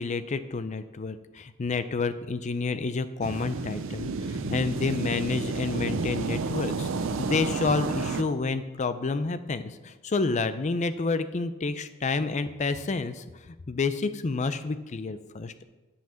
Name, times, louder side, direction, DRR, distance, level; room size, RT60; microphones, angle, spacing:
voice 1, 0.0-6.9 7.2-13.2 13.7-15.6, left 4 dB, 35° left, 12 dB, 0.4 m, -29 dB
sound 1, 3.2-8.2, right 4 dB, 60° right, 0.5 m, -31 dB
7.7 x 5.7 x 6.8 m, 1.2 s
head